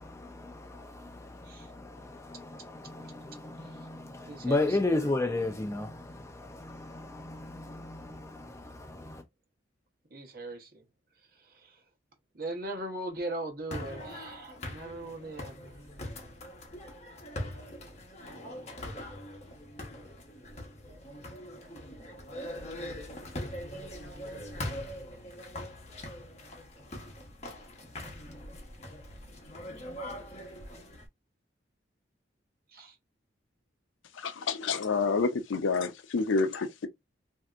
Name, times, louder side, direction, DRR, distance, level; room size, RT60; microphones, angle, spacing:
voice 1, 0.0-9.2, left 2 dB, 15° left, 0.4 m, -34 dB
voice 2, 4.3-5.1 10.1-10.8 11.4-11.8 12.3-15.8 32.7-33.0, right 1 dB, 50° right, 1.0 m, -40 dB
sound 1, 13.7-31.1, left 1 dB, 35° left, 0.9 m, -42 dB
voice 3, 34.2-36.9, left 4 dB, 85° left, 0.5 m, -28 dB
3.3 x 2.7 x 2.4 m
head